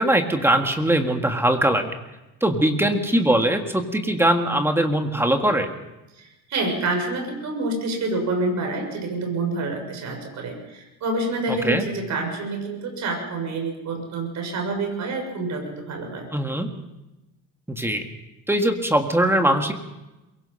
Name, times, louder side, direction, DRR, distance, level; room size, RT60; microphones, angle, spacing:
voice 1, 0.0-1.9 2.4-5.7 11.5-11.8 16.3-16.7 17.7-18.0 18.5-19.7, right 1 dB, 5° right, 5 dB, 1.8 m, -21 dB
voice 2, 6.1-16.3, right 2 dB, 45° right, 3 dB, 6.6 m, -27 dB
23.5 x 22.5 x 5.7 m, 1.0 s
cardioid pair, 155°, 40 cm